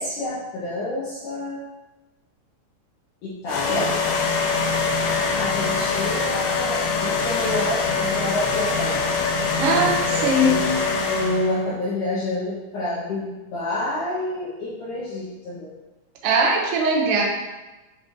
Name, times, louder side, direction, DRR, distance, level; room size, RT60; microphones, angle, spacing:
voice 1, 0.0-1.6 3.2-4.1 5.4-9.1 9.8-15.7, left 1 dB, 70° left, -10 dB, 1.9 m, -28 dB
sound 1, 3.5-11.6, left 4 dB, 90° left, 3.2 m, -24 dB
voice 2, 9.6-10.6 16.2-17.2, right 2 dB, 80° right, -1 dB, 2.0 m, -20 dB
8.6 x 4.4 x 2.7 m, 1.1 s
omnidirectional pair, 5.2 m